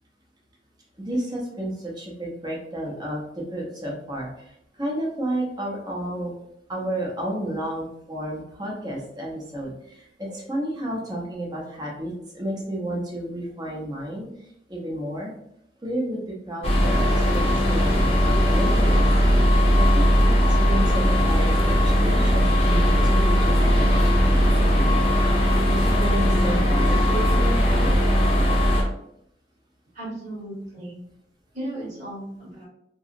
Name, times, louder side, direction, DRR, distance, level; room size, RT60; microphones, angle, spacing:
voice 1, 1.0-4.4 4.8-6.3 6.7-14.3 14.7-15.3 15.8-19.0 19.4-24.8 25.6-27.1, right 1 dB, 25° right, -3 dB, 0.7 m, -32 dB
sound 1, 16.6-28.8, equal, 35° left, 0.6 m, -19 dB
voice 2, 29.9-31.0 31.5-32.7, right 1 dB, 45° right, -7 dB, 1.1 m, -35 dB
2.8 x 2.3 x 2.5 m, 0.74 s
head